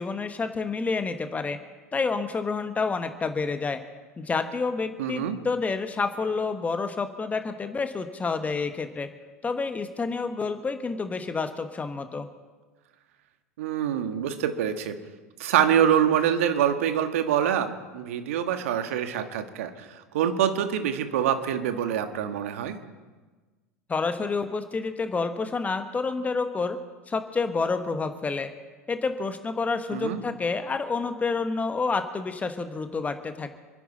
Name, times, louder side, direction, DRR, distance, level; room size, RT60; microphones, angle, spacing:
voice 1, 0.0-1.6 1.9-3.8 4.2-9.1 9.4-12.3 23.9-26.8 27.1-28.5 28.9-33.6, left 4 dB, 20° left, 8 dB, 1.3 m, -29 dB
voice 2, 5.0-5.4 13.6-15.0 15.4-22.8 29.9-30.2, right 9 dB, 65° right, 8 dB, 1.5 m, -25 dB
27.5 x 11.0 x 4.2 m, 1.3 s
figure-of-eight pair, 80°, 8 cm